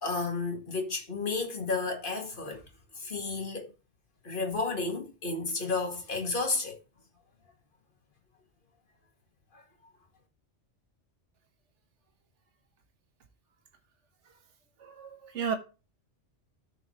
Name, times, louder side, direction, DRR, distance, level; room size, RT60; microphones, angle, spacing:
voice 1, 0.0-2.6 3.0-3.7 4.2-6.8 9.5-9.6, left 3 dB, 45° left, 2.0 m, -32 dB
voice 2, 14.8-15.5, right 7 dB, 80° right, 1.5 m, -33 dB
13.0 x 4.7 x 3.1 m
omnidirectional pair, 1.2 m